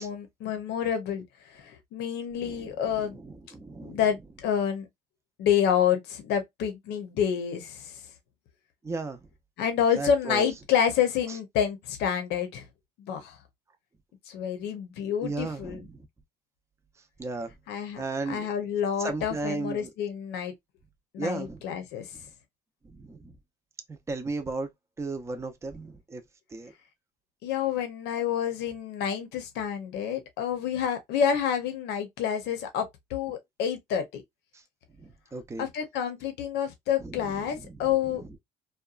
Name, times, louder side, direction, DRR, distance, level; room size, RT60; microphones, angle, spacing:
voice 1, 0.0-3.2 3.8-4.9 5.4-8.0 9.6-12.7 13.0-13.4 14.3-15.8 17.7-20.5 21.1-22.1 27.4-34.2 35.6-38.4, left 8 dB, 80° left, 0.7 m, -28 dB
voice 2, 2.4-4.0 8.8-9.2 10.0-10.5 11.3-11.4 15.2-16.1 17.2-17.5 18.0-18.5 19.0-19.9 21.2-21.6 22.8-23.3 23.9-24.7 25.0-26.2 26.5-26.7 34.5-34.6 35.0-35.7 37.0-37.8, right 3 dB, 15° right, 0.5 m, -35 dB
2.8 x 2.2 x 2.4 m
cardioid pair, 110°, 17 cm